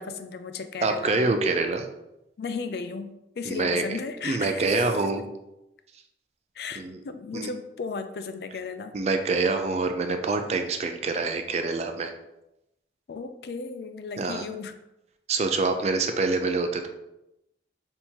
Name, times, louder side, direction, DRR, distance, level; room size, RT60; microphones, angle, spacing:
voice 1, 0.0-1.4 2.4-4.9 6.6-8.9 13.1-14.8, left 4 dB, 65° left, 9 dB, 0.4 m, -35 dB
voice 2, 0.8-1.9 3.5-3.8 4.2-5.2 6.8-7.0 7.3-7.5 8.9-12.1 14.2-14.4 15.3-16.9, right 3 dB, 35° right, 6 dB, 0.4 m, -26 dB
4.3 x 3.5 x 2.8 m, 0.90 s
head